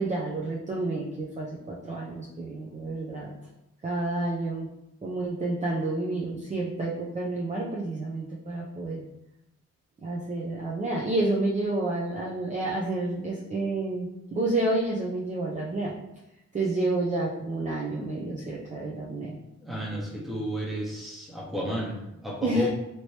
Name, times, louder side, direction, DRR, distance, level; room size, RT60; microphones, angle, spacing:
voice 1, 0.0-3.4 3.8-4.7 5.0-9.1 10.0-15.9 16.5-19.4 22.4-22.7, right 2 dB, 25° right, -4 dB, 0.5 m, -29 dB
voice 2, 19.6-22.7, equal, ahead, -4 dB, 1.0 m, -32 dB
2.9 x 2.8 x 3.1 m, 0.89 s
cardioid pair, 90°, 30 cm